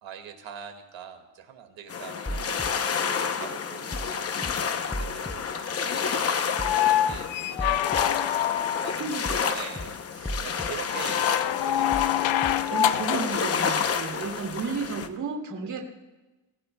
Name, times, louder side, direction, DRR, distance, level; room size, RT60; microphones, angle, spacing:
voice 1, 0.0-4.5 4.8-6.5 6.8-9.0 9.5-12.4, right 8 dB, 85° right, 5 dB, 2.1 m, -43 dB
sound 1, 1.9-15.1, left 6 dB, 35° left, 0.7 m, -30 dB
sound 2, 2.3-2.7 3.9-4.1 4.4-4.5 4.9-5.4 6.6-6.8 7.1-7.2 7.6-8.0 9.3-9.5 9.8-9.9 10.2-10.7 11.9-12.1 12.4-12.5, equal, 5° left, 0.4 m, -34 dB
sound 3, 6.5-9.1 10.9-13.4 15.0-15.1, left 12 dB, 85° left, 0.6 m, -25 dB
voice 2, 9.0-9.4 12.7-15.8, right 5 dB, 45° right, 1 dB, 2.3 m, -32 dB
26.0 x 16.0 x 2.3 m, 1.1 s
cardioid pair, 175°, 44 cm